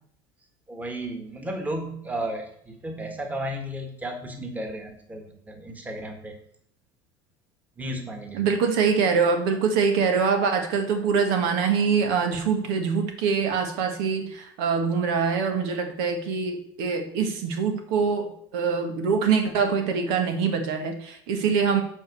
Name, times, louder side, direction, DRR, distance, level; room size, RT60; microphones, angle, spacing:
voice 1, 0.7-6.4 7.8-8.5, right 1 dB, 15° right, 4 dB, 1.7 m, -34 dB
voice 2, 8.3-21.8, right 5 dB, 75° right, 5 dB, 1.6 m, -24 dB
8.0 x 5.2 x 6.8 m, 0.67 s
supercardioid pair, 120°, 12 cm